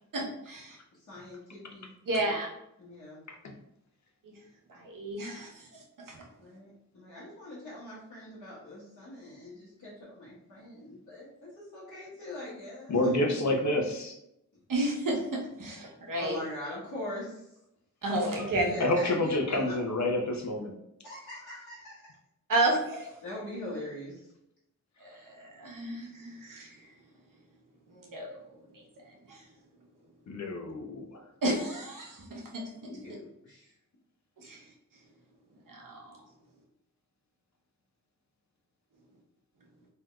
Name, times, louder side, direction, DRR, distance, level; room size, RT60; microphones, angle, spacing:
voice 1, 0.1-0.8 2.1-2.5 4.2-4.3 4.8-6.2 14.7-16.4 18.0-18.7 22.5-23.1 25.0-26.9 27.9-28.3 28.7-29.4 31.4-32.6 34.4-34.6 35.7-36.1, right 1 dB, 75° right, -1 dB, 1.0 m, -32 dB
voice 2, 1.0-1.9 2.2-2.3 2.8-3.2 6.4-13.4 16.2-17.4 18.6-19.7 21.0-22.1 23.2-24.3 32.8-33.7, left 1 dB, 80° left, -12 dB, 1.3 m, -41 dB
voice 3, 12.9-14.2 18.3-20.7 30.3-31.2, left 1 dB, 55° left, 2 dB, 0.8 m, -29 dB
3.4 x 2.8 x 2.3 m, 0.81 s
cardioid pair, 40°, 33 cm